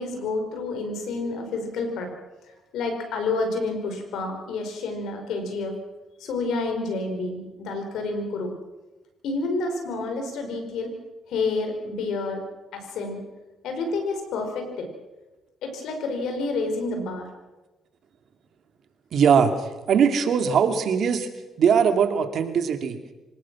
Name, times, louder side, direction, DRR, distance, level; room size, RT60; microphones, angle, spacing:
voice 1, 0.0-2.1 2.7-5.7 6.2-8.5 9.2-10.9 11.3-12.5 12.7-13.2 13.6-14.9 15.6-17.3, left 3 dB, 80° left, 5 dB, 5.1 m, -29 dB
voice 2, 19.1-21.3 21.6-23.0, right 7 dB, 65° right, 7 dB, 2.6 m, -21 dB
25.5 x 18.5 x 6.3 m, 1.1 s
cardioid pair, 90°, 0 cm